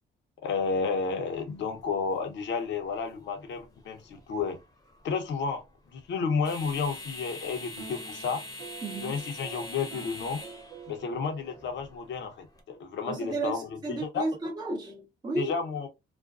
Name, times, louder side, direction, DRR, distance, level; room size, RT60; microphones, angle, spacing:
voice 1, 0.4-4.6 5.0-8.4 8.9-10.4 10.9-14.3 15.3-15.9, left 5 dB, 65° left, 0.7 m, -32 dB
sound 1, 1.3-12.6, left 2 dB, 15° left, 0.8 m, -46 dB
sound 2, 7.8-12.2, right 6 dB, 90° right, 0.6 m, -47 dB
voice 2, 8.8-9.1 13.1-15.6, right 2 dB, 20° right, 0.7 m, -33 dB
2.5 x 2.1 x 2.4 m
cardioid pair, 90°, 20 cm